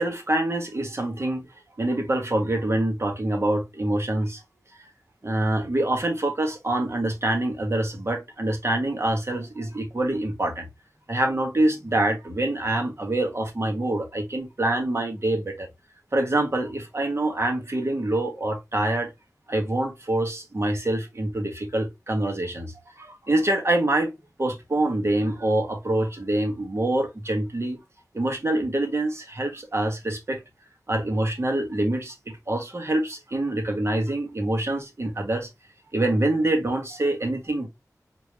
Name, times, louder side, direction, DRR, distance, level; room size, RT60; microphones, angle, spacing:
voice 1, 0.0-1.5 1.8-4.4 5.2-10.7 11.1-15.7 16.1-19.1 19.5-24.1 24.4-27.8 28.1-30.4 30.9-35.5 35.9-37.7, right 1 dB, 45° right, 1.4 m, -25 dB
5.1 x 3.0 x 3.1 m
wide cardioid pair, 75°, 6 cm